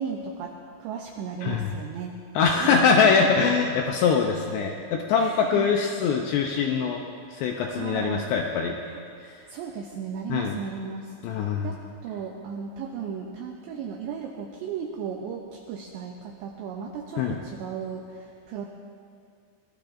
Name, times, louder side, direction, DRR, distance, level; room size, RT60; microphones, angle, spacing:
voice 1, 0.0-2.1 2.4-3.3 5.2-5.8 7.7-8.3 8.9-9.0 9.5-11.1 11.6-18.7, right 6 dB, 80° right, 2 dB, 2.5 m, -35 dB
voice 2, 1.4-1.7 2.3-7.0 7.3-8.8 9.3-9.4 10.3-10.6 11.2-11.7 17.2-17.4, left 5 dB, 85° left, 2 dB, 2.4 m, -23 dB
22.5 x 17.0 x 2.6 m, 2.3 s
omnidirectional pair, 5.8 m